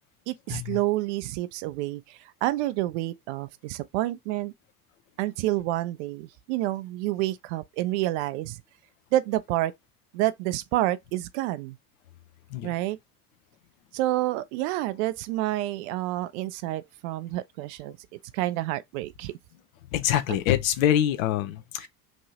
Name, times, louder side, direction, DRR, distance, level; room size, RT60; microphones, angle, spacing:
voice 1, 0.3-4.5 5.2-8.6 9.1-9.7 10.1-11.8 12.6-13.0 13.9-18.0 18.3-19.3, right 16 dB, 50° right, 0.5 m, -28 dB
voice 2, 19.9-21.9, left 11 dB, 60° left, 0.7 m, -25 dB
3.0 x 2.6 x 2.8 m
figure-of-eight pair, 65°, 45 cm